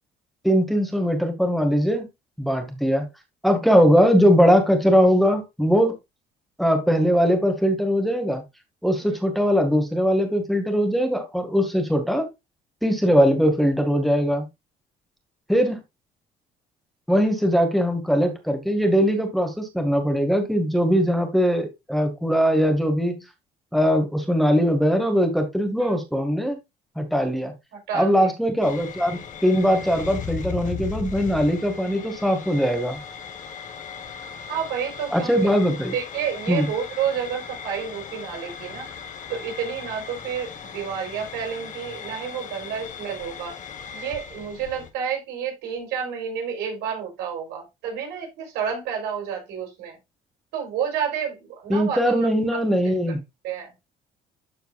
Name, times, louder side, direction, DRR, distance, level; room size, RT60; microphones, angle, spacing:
voice 1, 0.4-2.1 2.4-3.1 3.4-5.9 6.6-8.4 8.8-12.3 12.8-14.5 15.5-15.8 17.1-23.2 23.7-26.6 27.0-27.5 27.9-33.0 35.1-35.9 36.5-36.7 51.7-53.2, equal, ahead, 2.0 m, -21 dB
voice 2, 27.7-28.3 34.5-35.5 35.9-38.9 39.3-43.6 43.9-50.0 50.5-52.6 52.8-52.9 53.4-53.7, right 7 dB, 85° right, 4.0 m, -30 dB
sound 1, 28.6-44.9, left 6 dB, 50° left, 1.6 m, -37 dB
13.0 x 4.5 x 2.5 m
cardioid pair, 110°, 17 cm